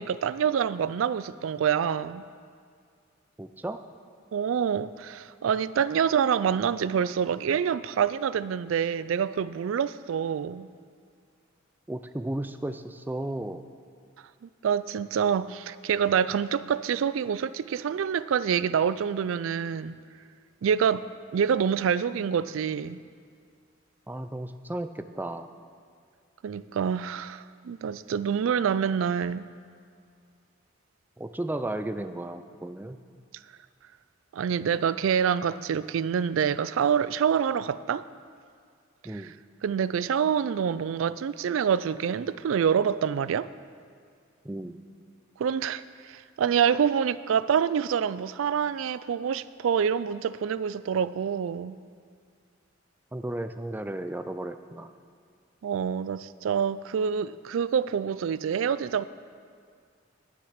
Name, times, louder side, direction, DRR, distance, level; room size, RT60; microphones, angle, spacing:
voice 1, 0.0-2.2 4.3-10.7 14.4-20.0 20.6-23.0 26.4-29.5 34.3-38.1 39.1-39.3 39.6-43.5 45.4-51.8 55.6-59.0, right 7 dB, 80° right, 0.3 m, -26 dB
voice 2, 3.4-3.8 11.9-13.6 24.1-25.5 31.2-33.0 39.0-39.3 44.4-44.8 53.1-54.9, right 1 dB, 10° right, 0.4 m, -34 dB
10.0 x 10.0 x 6.5 m
head